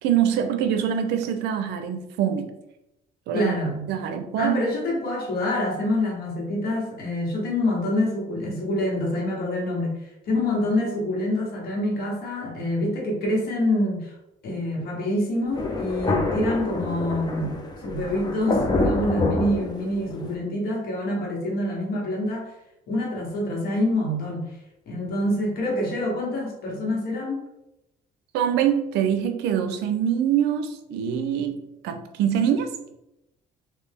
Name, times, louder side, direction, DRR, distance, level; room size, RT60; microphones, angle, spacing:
voice 1, 0.0-2.5 3.3-3.5 3.9-4.6 28.3-33.0, right 9 dB, 90° right, 8 dB, 0.5 m, -24 dB
voice 2, 3.3-3.9 4.4-14.1 14.4-22.5 22.9-24.6 24.9-27.4, left 1 dB, 65° left, -2 dB, 1.4 m, -26 dB
Thunder, 15.5-20.3, left 2 dB, 25° left, 0.6 m, -27 dB
3.3 x 2.7 x 3.5 m, 0.87 s
cardioid pair, 110°, 17 cm